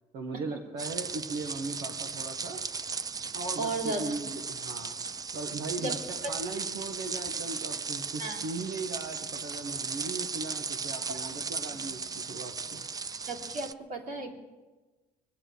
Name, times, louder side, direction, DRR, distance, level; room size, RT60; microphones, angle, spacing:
voice 1, 0.1-2.6 3.3-5.0 5.3-12.9, right 3 dB, 80° right, 1 dB, 1.5 m, -38 dB
sound 1, 0.8-13.7, right 5 dB, 20° right, 0.4 m, -36 dB
voice 2, 3.6-4.1 5.8-5.9 8.2-8.4 11.1-11.2 13.3-14.3, right 2 dB, 60° right, -2 dB, 3.2 m, -34 dB
23.0 x 8.2 x 6.4 m, 1.2 s
cardioid pair, 110°, 17 cm